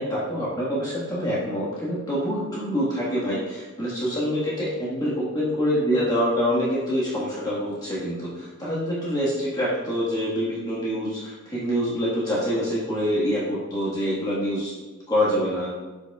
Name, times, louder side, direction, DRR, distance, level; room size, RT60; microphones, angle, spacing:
voice 1, 0.0-14.7 15.1-15.7, equal, 20° left, -7 dB, 1.4 m, -26 dB
12.0 x 5.0 x 2.3 m, 1.2 s
head